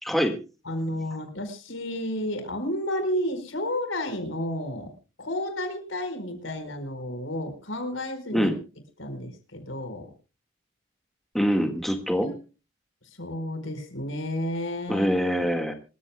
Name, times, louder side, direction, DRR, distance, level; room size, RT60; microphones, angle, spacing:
voice 1, 0.0-0.4 8.3-8.5 11.3-12.3 14.9-15.7, equal, ahead, 4 dB, 1.7 m, -24 dB
voice 2, 0.7-4.9 5.2-8.5 9.0-10.1 12.2-12.3 13.2-15.1, left 1 dB, 75° left, 8 dB, 4.5 m, -31 dB
26.5 x 14.5 x 2.2 m, 0.33 s
head